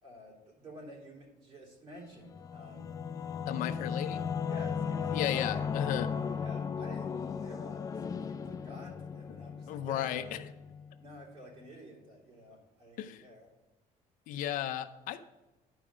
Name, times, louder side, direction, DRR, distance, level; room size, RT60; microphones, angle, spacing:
voice 1, 0.0-2.9 3.7-3.9 4.4-5.6 6.4-10.6 11.0-13.5, equal, 40° right, -3 dB, 3.4 m, -51 dB
Singing / Musical instrument, 2.2-11.3, left 6 dB, 25° left, 0.3 m, -36 dB
voice 2, 3.5-4.2 5.1-6.1 9.7-10.4 13.0-13.2 14.3-15.2, left 11 dB, 65° left, 11 dB, 0.6 m, -34 dB
11.5 x 4.9 x 5.1 m, 1.1 s
cardioid pair, 155°, 15 cm